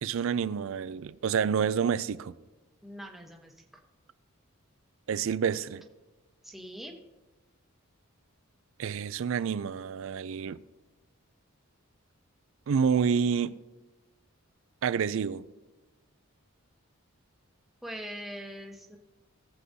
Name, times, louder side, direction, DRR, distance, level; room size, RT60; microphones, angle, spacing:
voice 1, 0.0-2.3 5.1-5.8 8.8-10.6 12.7-13.5 14.8-15.4, right 7 dB, 60° right, 0.4 m, -28 dB
voice 2, 2.8-3.5 6.4-6.9 17.8-19.0, equal, ahead, 0.9 m, -42 dB
19.5 x 7.7 x 2.7 m
head